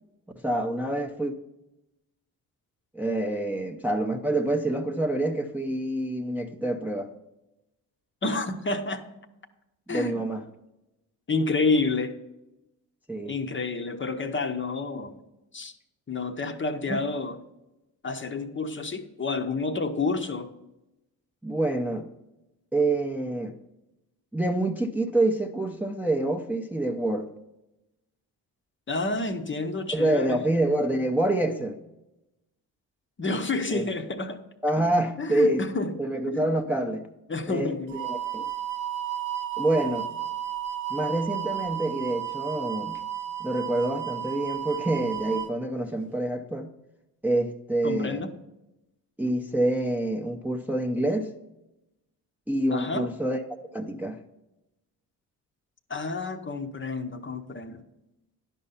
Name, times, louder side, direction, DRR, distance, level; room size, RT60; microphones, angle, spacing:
voice 1, 0.4-1.3 2.9-7.1 9.9-10.4 13.1-13.4 16.9-17.0 21.4-22.1 22.7-23.5 24.3-27.3 29.9-31.8 33.7-33.9 34.6-35.6 36.0-37.0 37.5-38.5 39.6-40.1 40.9-43.0 43.4-46.7 47.2-48.3 49.2-51.3 52.5-53.4 53.7-54.2, right 1 dB, 5° right, 0.7 m, -27 dB
voice 2, 8.2-9.1 9.9-10.2 11.3-12.2 13.2-15.2 15.5-15.8 16.1-17.4 18.0-20.5 28.9-30.4 33.2-34.4 35.2-35.9 36.3-36.5 37.3-38.0 47.8-48.3 52.7-53.1 55.9-57.8, left 3 dB, 30° left, 0.8 m, -29 dB
sound 1, 37.9-45.5, right 11 dB, 70° right, 0.9 m, -33 dB
10.5 x 5.5 x 5.6 m
supercardioid pair, 60°, 42 cm